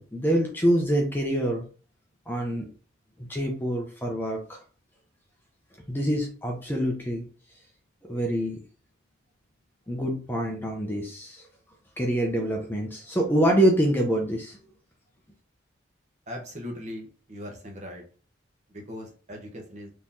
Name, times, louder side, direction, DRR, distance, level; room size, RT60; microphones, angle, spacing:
voice 1, 0.0-1.7 2.3-2.7 3.3-4.6 5.9-7.3 8.0-8.6 9.9-11.4 12.0-14.6, right 1 dB, 10° left, 1 dB, 0.6 m, -25 dB
voice 2, 16.3-18.0 18.7-19.9, left 1 dB, 35° right, 1 dB, 1.0 m, -39 dB
3.8 x 3.0 x 2.7 m, 0.38 s
head